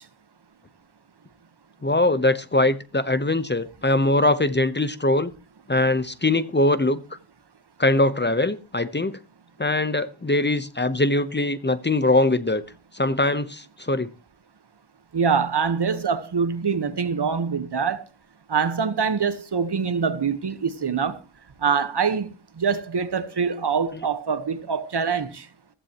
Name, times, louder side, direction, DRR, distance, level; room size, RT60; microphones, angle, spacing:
voice 1, 1.8-5.3 5.7-7.0 7.8-9.2 9.6-12.6 12.9-14.1, left 2 dB, 25° left, 0.9 m, -22 dB
voice 2, 15.1-18.0 18.5-21.2 21.6-22.3 22.6-25.4, right 6 dB, 60° right, 1.2 m, -24 dB
15.0 x 14.5 x 3.0 m
wide cardioid pair, 80°, 47 cm